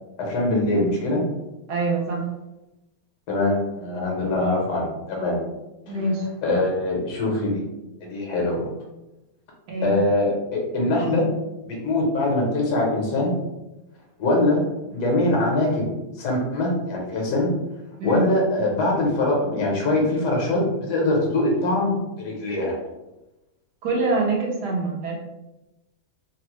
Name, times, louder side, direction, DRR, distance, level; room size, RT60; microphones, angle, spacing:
voice 1, 0.2-1.2 3.3-5.4 6.4-7.6 8.0-8.7 9.8-11.3 11.6-13.3 14.2-14.6 14.9-15.9 16.2-17.5 18.0-22.8, left 2 dB, 80° left, -1 dB, 1.5 m, -23 dB
voice 2, 1.7-2.3 5.9-6.2 9.7-10.0 18.0-18.2 23.8-25.1, right 2 dB, 75° right, -2 dB, 1.4 m, -24 dB
3.6 x 2.0 x 3.0 m, 0.98 s
omnidirectional pair, 1.7 m